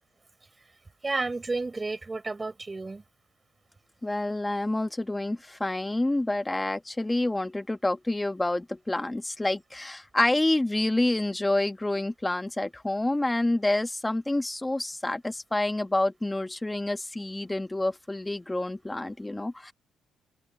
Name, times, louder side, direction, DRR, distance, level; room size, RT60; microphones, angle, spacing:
voice 1, 1.0-3.0, right 3 dB, 25° right, 5.4 m, -31 dB
voice 2, 4.0-19.7, left 2 dB, 15° left, 1.6 m, -28 dB
open air
cardioid pair, 90°, 0 cm